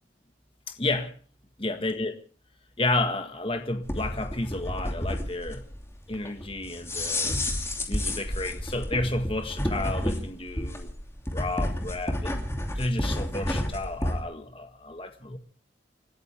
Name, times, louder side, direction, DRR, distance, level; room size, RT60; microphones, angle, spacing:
voice 1, 0.7-1.1 1.6-2.2 2.8-5.6 6.1-7.4 7.9-10.9 11.3-15.4, left 2 dB, 30° left, 1.6 m, -31 dB
sound 1, 3.8-14.2, left 1 dB, 15° left, 2.7 m, -31 dB
30.0 x 13.5 x 3.5 m
head